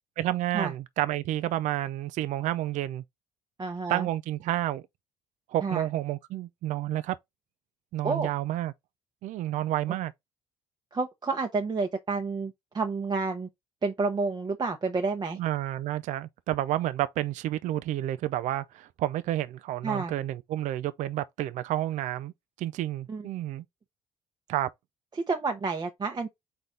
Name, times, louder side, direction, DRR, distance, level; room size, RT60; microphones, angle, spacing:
voice 1, 0.2-3.0 3.9-4.8 5.5-7.2 7.9-8.7 9.2-10.1 15.4-22.3 22.6-23.6 24.5-24.7, right 14 dB, 60° right, 0.4 m, -30 dB
voice 2, 3.6-4.1 5.6-5.9 8.0-8.3 10.9-13.5 13.8-15.4 19.8-20.1 23.1-23.3 25.1-26.3, right 4 dB, 30° right, 0.8 m, -29 dB
4.1 x 3.3 x 3.7 m
hypercardioid pair, 60°, 14 cm